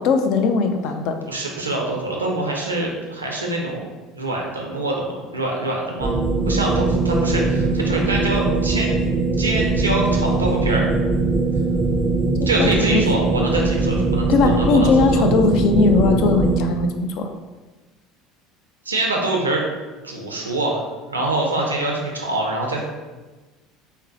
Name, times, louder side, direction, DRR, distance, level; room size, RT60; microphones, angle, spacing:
voice 1, 0.0-1.2 12.4-13.0 14.3-17.3, left 4 dB, 55° left, 6 dB, 0.3 m, -19 dB
voice 2, 1.3-3.9 4.1-6.2 6.5-8.9 9.4-10.8 12.5-14.9 18.9-19.6 20.0-20.8 21.1-22.8, right 2 dB, 85° right, -1 dB, 0.4 m, -24 dB
sound 1, 6.0-16.6, right 3 dB, 20° right, 0.4 m, -21 dB
3.7 x 2.0 x 2.7 m, 1.2 s
figure-of-eight pair, 65°, 0 cm